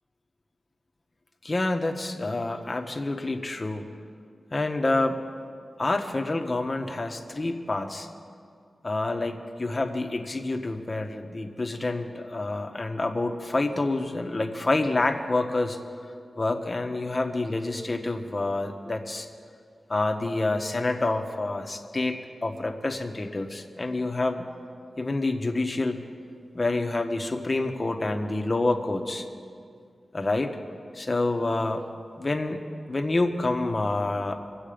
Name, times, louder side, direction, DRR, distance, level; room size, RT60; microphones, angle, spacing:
voice 1, 1.4-3.9 4.5-5.2 5.8-8.1 8.8-15.8 16.4-19.3 19.9-24.5 25.0-26.0 26.5-29.2 30.1-30.5 30.9-31.9 32.2-32.6 32.9-34.4, left 2 dB, 35° left, 5 dB, 1.1 m, -27 dB
23.5 x 8.1 x 5.1 m, 2.2 s
wide cardioid pair, 90°, 0 cm